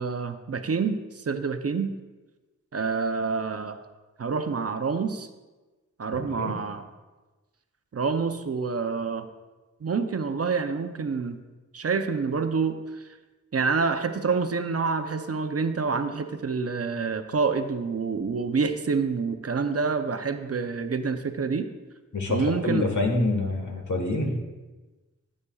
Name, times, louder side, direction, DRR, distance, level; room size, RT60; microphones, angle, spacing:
voice 1, 0.0-1.9 2.7-3.8 4.2-5.3 6.0-6.8 7.9-9.3 9.8-11.4 11.7-13.0 13.5-21.7 22.3-22.9, right 5 dB, 50° right, 8 dB, 0.6 m, -27 dB
voice 2, 6.1-6.5 22.1-24.4, left 2 dB, 75° left, 2 dB, 1.5 m, -26 dB
12.5 x 8.3 x 2.3 m, 1.2 s
wide cardioid pair, 85°, 30 cm